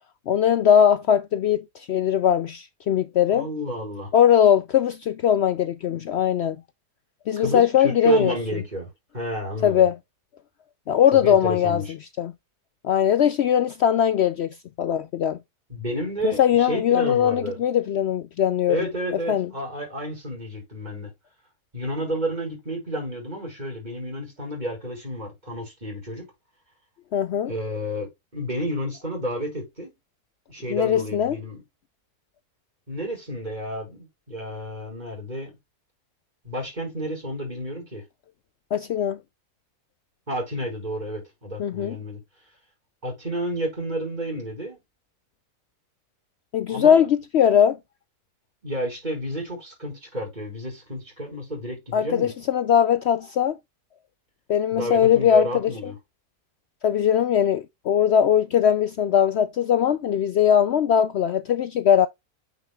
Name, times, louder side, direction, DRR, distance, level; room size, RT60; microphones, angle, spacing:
voice 1, 0.3-3.5 4.1-6.6 7.3-8.3 9.6-10.0 10.9-11.8 12.2-12.3 12.8-14.5 14.8-15.4 16.2-18.9 19.3-19.5 27.1-27.5 30.7-31.4 38.7-39.2 41.6-42.0 46.5-47.8 51.9-53.6 54.5-55.9 56.8-62.1, left 9 dB, 80° left, 0.5 m, -20 dB
voice 2, 3.3-4.1 7.4-8.9 9.1-9.9 11.1-11.9 15.7-17.6 18.7-21.1 21.7-26.3 27.4-29.9 30.5-31.6 32.9-35.5 36.4-38.0 40.3-42.2 43.0-44.8 46.7-47.1 48.6-52.3 54.7-56.0, right 1 dB, 25° right, 5.5 m, -31 dB
9.1 x 6.0 x 2.3 m
omnidirectional pair, 1.7 m